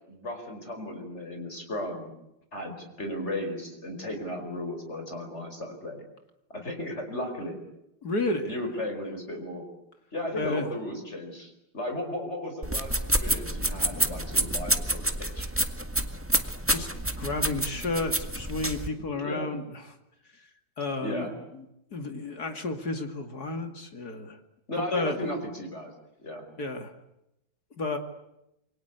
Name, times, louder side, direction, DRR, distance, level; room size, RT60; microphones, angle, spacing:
voice 1, 0.1-2.1 2.5-6.0 6.5-7.6 8.4-9.6 10.1-15.5 19.2-19.5 21.0-21.3 24.7-25.9 26.2-26.4, left 1 dB, 35° left, 4 dB, 5.3 m, -35 dB
voice 2, 8.0-8.5 10.3-10.7 16.7-16.9 17.2-19.8 20.8-21.3 21.9-24.4 24.8-25.2 26.6-26.9 27.8-28.0, left 2 dB, 55° left, 6 dB, 3.0 m, -31 dB
sound 1, 12.6-18.9, right 1 dB, 5° right, 1.6 m, -28 dB
28.0 x 24.0 x 8.2 m, 0.85 s
omnidirectional pair, 2.0 m